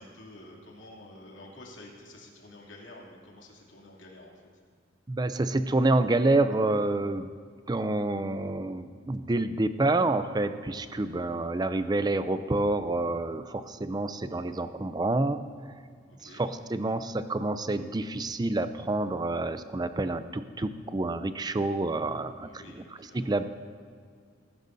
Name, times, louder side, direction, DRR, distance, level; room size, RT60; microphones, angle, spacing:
voice 1, 0.0-4.3 16.1-16.4 22.1-23.4, left 1 dB, 85° left, -2 dB, 2.6 m, -49 dB
voice 2, 5.1-7.3 7.7-15.8 16.2-22.5 23.0-23.4, right 2 dB, 20° right, 11 dB, 0.5 m, -28 dB
19.5 x 12.0 x 2.7 m, 2.1 s
head